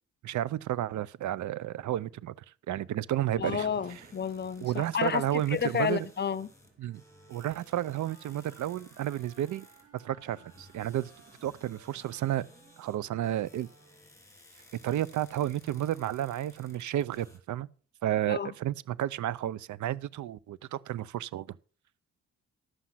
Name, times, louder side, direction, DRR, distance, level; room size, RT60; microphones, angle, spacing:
voice 1, 0.2-2.3 2.7-3.7 4.6-6.1 6.8-7.0 7.3-9.7 9.9-11.1 11.4-12.5 12.8-13.7 14.8-17.7 18.0-21.6, right 12 dB, 80° right, 0.6 m, -32 dB
voice 2, 3.4-6.5 18.3-18.5, left 7 dB, 35° left, 0.6 m, -31 dB
Thunder, 3.4-17.4, right 4 dB, 30° right, 2.0 m, -59 dB
sound 1, 3.9-17.4, left 2 dB, 10° left, 2.8 m, -58 dB
Wind instrument woodwind instrument, 6.8-14.2, right 4 dB, 55° right, 4.6 m, -60 dB
11.5 x 7.6 x 5.7 m
cardioid pair, 120°, 29 cm